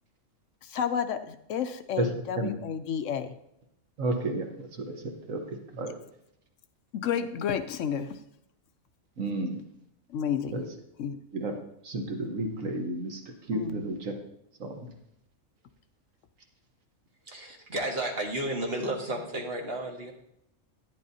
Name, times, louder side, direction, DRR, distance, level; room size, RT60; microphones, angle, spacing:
voice 1, 0.6-3.3 6.9-8.2 10.1-10.6 11.0-11.2 13.5-13.9, left 8 dB, 70° left, 9 dB, 0.9 m, -31 dB
voice 2, 4.0-4.9 5.3-5.9 9.2-9.6 10.5-10.6 11.3-11.5 11.8-13.2 13.5-14.1 14.6-14.7, right 2 dB, 70° right, 3 dB, 1.6 m, -31 dB
voice 3, 17.3-20.1, right 1 dB, 45° right, 0 dB, 1.6 m, -32 dB
11.0 x 9.9 x 2.8 m, 0.79 s
omnidirectional pair, 1.4 m